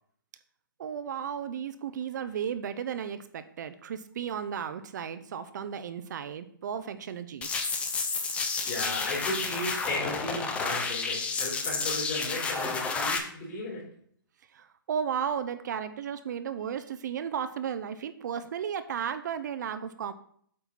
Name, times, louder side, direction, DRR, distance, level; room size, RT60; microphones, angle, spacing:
voice 1, 0.8-7.5 14.5-20.1, right 8 dB, 55° right, 11 dB, 0.5 m, -34 dB
sound 1, 7.4-13.2, left 4 dB, 10° left, 0.5 m, -31 dB
voice 2, 8.1-13.9, left 2 dB, 40° left, -3 dB, 3.2 m, -35 dB
8.1 x 4.4 x 4.1 m, 0.62 s
hypercardioid pair, 150°, 12 cm